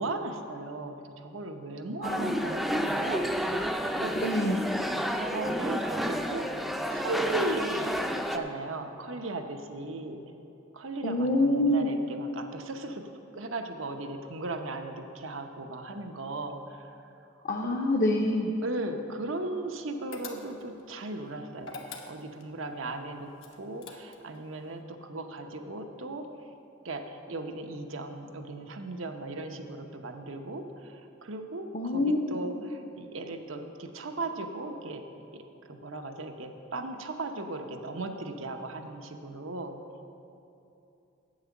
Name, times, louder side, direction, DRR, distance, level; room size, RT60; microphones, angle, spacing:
voice 1, 0.0-3.3 3.9-4.6 5.1-6.5 6.9-10.2 10.7-13.1 13.3-17.2 17.6-17.8 18.6-26.3 26.8-35.0 35.3-35.4 35.7-39.8, right 2 dB, 85° right, 6 dB, 0.9 m, -37 dB
voice 2, 2.0-2.9 4.2-4.7 11.0-11.9 17.5-18.5 31.7-32.2, left 1 dB, 45° left, 1 dB, 0.7 m, -27 dB
sound 1, 2.0-8.4, equal, ahead, 0.4 m, -30 dB
sound 2, 20.1-20.8 21.6-22.5 23.4-24.4, left 4 dB, 80° left, 1.1 m, -43 dB
9.0 x 8.3 x 7.0 m, 2.8 s
head